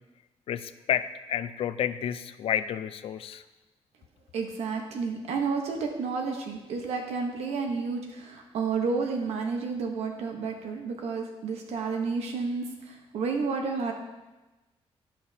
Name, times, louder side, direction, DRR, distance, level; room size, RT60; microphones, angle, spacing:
voice 1, 0.5-3.4, left 10 dB, 65° left, 12 dB, 0.4 m, -30 dB
voice 2, 4.3-13.9, right 4 dB, 90° right, 2 dB, 0.9 m, -31 dB
12.5 x 5.8 x 2.7 m, 1.1 s
wide cardioid pair, 170°, 11 cm